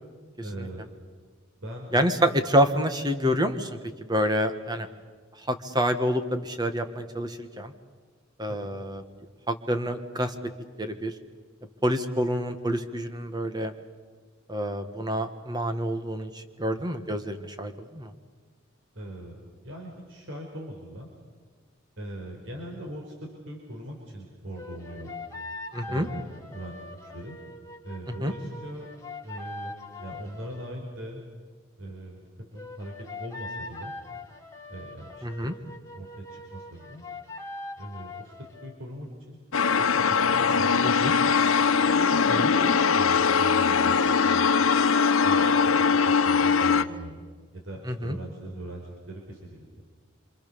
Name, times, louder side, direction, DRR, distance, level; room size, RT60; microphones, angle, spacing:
voice 1, 0.4-0.9 1.6-1.9 8.5-8.7 18.9-21.1 22.0-25.1 25.8-27.4 27.8-28.9 29.2-29.7 30.0-31.2 31.8-32.2 32.5-33.9 34.7-35.3 35.9-37.0 37.8-39.4 39.7-41.2 41.8-44.5 45.2-45.5 46.0-47.2 47.5-49.7, right 1 dB, 65° right, 1 dB, 4.6 m, -40 dB
voice 2, 1.9-4.9 5.5-7.7 8.4-9.0 9.5-10.4 10.8-11.1 11.8-13.7 14.5-18.1 25.7-26.1 28.1-28.3 35.2-35.5 40.8-41.1 42.4-42.5 47.9-48.2, equal, 20° right, 8 dB, 1.7 m, -27 dB
sound 1, 24.6-30.8 32.6-38.8, left 2 dB, 15° left, 2.5 m, -42 dB
sound 2, 39.5-46.8, left 5 dB, 80° left, 0.9 m, -21 dB
27.0 x 27.0 x 7.0 m, 1.4 s
head